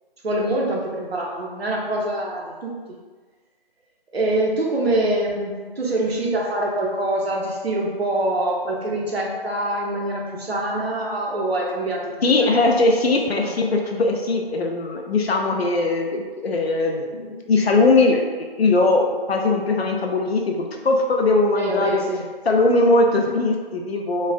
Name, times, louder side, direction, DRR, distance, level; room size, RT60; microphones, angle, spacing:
voice 1, 0.2-2.8 4.1-12.6 13.3-13.5 21.5-22.2, right 1 dB, 90° right, -2 dB, 0.8 m, -25 dB
voice 2, 12.2-22.0 22.5-24.3, left 2 dB, 85° left, 2 dB, 0.6 m, -20 dB
3.1 x 2.3 x 2.4 m, 1.4 s
figure-of-eight pair, 160°, 30 cm